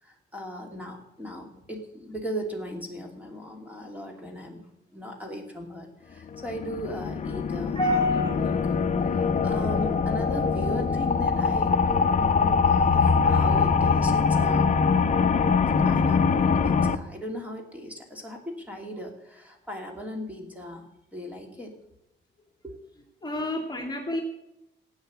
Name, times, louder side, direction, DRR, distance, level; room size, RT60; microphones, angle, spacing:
voice 1, 0.0-7.8 8.3-14.7 15.4-15.6 15.8-21.7 22.6-22.8, equal, 5° right, 2 dB, 2.8 m, -38 dB
sound 1, 6.3-17.0, left 5 dB, 35° left, 0.9 m, -23 dB
voice 2, 7.7-8.6 23.2-24.2, left 1 dB, 20° left, 2 dB, 2.3 m, -28 dB
16.5 x 9.1 x 8.0 m, 0.87 s
cardioid pair, 135°, 20 cm